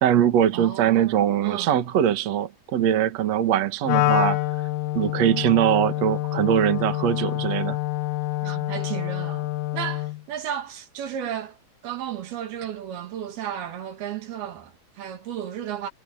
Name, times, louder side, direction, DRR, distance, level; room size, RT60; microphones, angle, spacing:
voice 1, 0.0-4.4 4.9-7.8, right 10 dB, 55° right, 2.4 m, -22 dB
voice 2, 0.5-1.7 8.4-11.6 11.8-15.9, right 10 dB, 75° right, 4.0 m, -33 dB
Wind instrument woodwind instrument, 3.9-10.2, left 16 dB, 80° left, 2.0 m, -26 dB
omnidirectional pair, 4.5 m